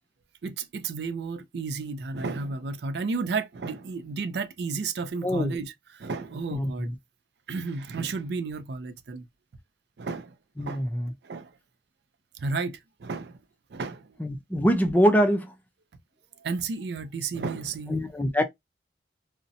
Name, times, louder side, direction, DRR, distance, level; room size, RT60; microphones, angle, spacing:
voice 1, 0.4-6.9 7.5-9.2 10.0-10.8 11.2-11.5 12.4-13.4 13.7-14.1 16.4-18.0, right 4 dB, 70° right, 0.4 m, -32 dB
voice 2, 5.2-5.6 6.5-6.9 10.6-11.1 14.2-15.5 17.9-18.4, equal, 10° left, 0.4 m, -24 dB
2.6 x 2.1 x 2.6 m
head